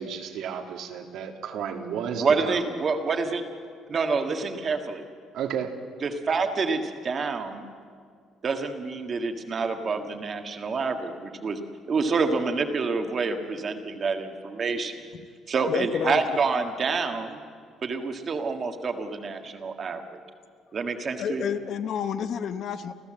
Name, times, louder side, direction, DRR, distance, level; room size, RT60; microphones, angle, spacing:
voice 1, 0.0-2.7 5.3-5.8, right 7 dB, 65° right, 4 dB, 1.9 m, -32 dB
voice 2, 2.2-3.4 3.9-5.0 6.0-7.7 8.4-11.6 11.9-14.9 15.5-17.4 17.8-20.2 20.7-21.5, right 4 dB, 30° right, 6 dB, 1.6 m, -27 dB
voice 3, 15.7-16.2 21.2-22.9, left 8 dB, 45° left, 10 dB, 0.9 m, -29 dB
29.5 x 14.5 x 7.6 m, 2.1 s
cardioid pair, 170°, 0 cm